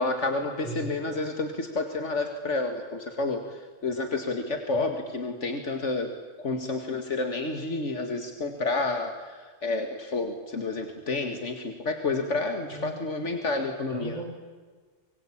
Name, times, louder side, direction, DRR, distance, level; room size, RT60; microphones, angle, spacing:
voice 1, 0.0-3.4 3.8-6.1 6.4-14.2, left 3 dB, 80° left, 5 dB, 2.3 m, -30 dB
voice 2, 0.6-1.1 4.7-4.8 12.7-13.0 13.9-14.2, right 1 dB, 35° left, 0 dB, 7.6 m, -37 dB
26.0 x 23.5 x 8.8 m, 1.4 s
omnidirectional pair, 1.2 m